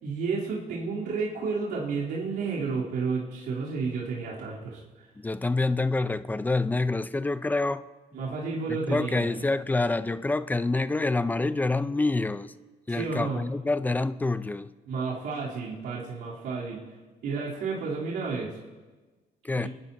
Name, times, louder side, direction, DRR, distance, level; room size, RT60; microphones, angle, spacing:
voice 1, 0.0-4.8 8.1-9.3 12.9-13.4 14.9-16.8 17.2-18.6 19.5-19.7, right 4 dB, 75° right, 3.3 m, -31 dB
voice 2, 5.2-7.9 8.7-12.5 12.9-14.7 19.4-19.7, left 2 dB, 10° left, 0.5 m, -27 dB
29.0 x 11.0 x 2.7 m
cardioid pair, 110°, 17 cm